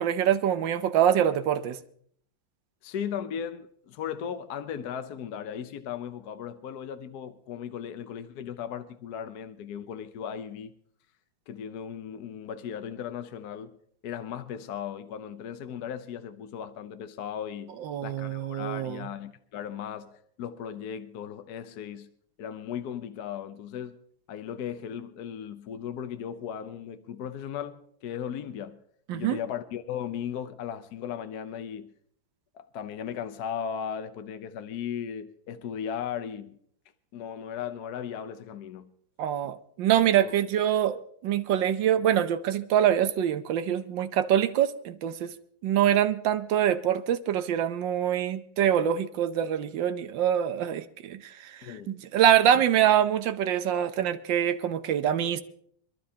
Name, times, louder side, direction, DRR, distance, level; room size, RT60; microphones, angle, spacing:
voice 1, 0.0-1.8 17.8-19.1 29.1-29.4 39.2-45.3 45.6-55.4, right 10 dB, 75° right, 1.5 m, -25 dB
voice 2, 2.8-10.7 11.5-13.8 14.0-22.1 22.4-24.0 24.3-28.8 29.1-31.9 32.5-36.6 37.1-38.9 40.1-40.3 51.6-52.0 52.5-52.6, left 8 dB, 65° left, 1.2 m, -37 dB
26.0 x 12.5 x 2.8 m
omnidirectional pair, 2.0 m